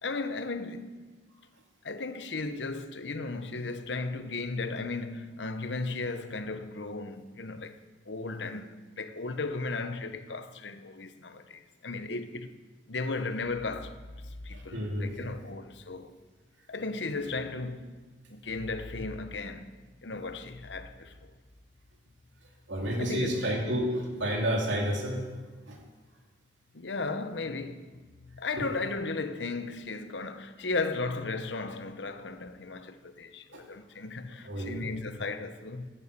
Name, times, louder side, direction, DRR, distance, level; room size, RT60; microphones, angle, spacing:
voice 1, 0.0-1.1 1.8-7.8 8.1-12.5 12.9-16.1 16.7-18.0 18.3-19.7 20.0-21.3 22.9-23.6 26.7-35.9, left 3 dB, 75° left, 1.0 m, -35 dB
voice 2, 14.5-15.1 22.7-25.2 25.7-25.8 33.5-33.6 34.4-34.8, equal, 90° right, 2.7 m, -30 dB
15.5 x 10.0 x 6.8 m
head